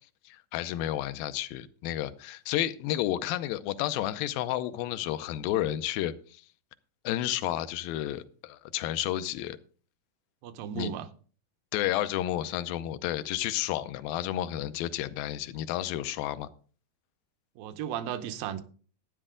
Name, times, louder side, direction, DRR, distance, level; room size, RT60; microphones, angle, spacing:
voice 1, 0.3-6.4 7.0-9.6 10.8-11.0 11.7-16.5, left 13 dB, 90° left, 2.5 m, -31 dB
voice 2, 10.4-11.1 17.6-18.6, right 10 dB, 80° right, 2.5 m, -35 dB
12.5 x 9.8 x 3.7 m
omnidirectional pair, 4.1 m